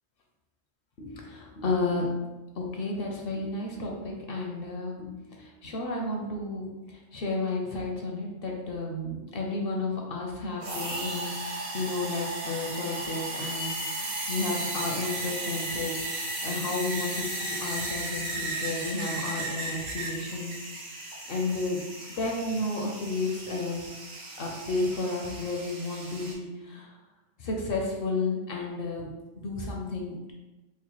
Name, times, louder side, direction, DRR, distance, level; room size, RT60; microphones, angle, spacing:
voice 1, 1.0-2.2 2.6-6.7 7.1-16.0 16.4-20.5 21.3-21.8 22.1-23.9 24.4-26.9 27.4-29.1 29.4-30.3, left 2 dB, 60° left, 0 dB, 0.7 m, -32 dB
sound 1, 10.6-26.3, right 1 dB, 65° right, 1.2 m, -35 dB
4.4 x 2.1 x 2.9 m, 1.1 s
omnidirectional pair, 1.2 m